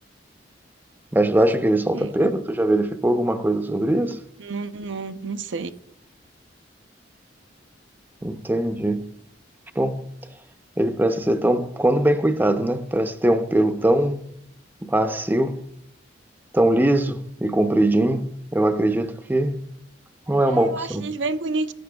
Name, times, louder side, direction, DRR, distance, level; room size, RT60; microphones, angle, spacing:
voice 1, 1.1-4.2 8.2-9.1 9.8-10.0 10.8-14.2 14.8-15.6 16.5-19.6 20.3-21.1, right 1 dB, 10° right, 0.6 m, -21 dB
voice 2, 4.4-5.7 20.5-21.7, right 3 dB, 80° right, 0.6 m, -29 dB
14.5 x 9.6 x 2.3 m
head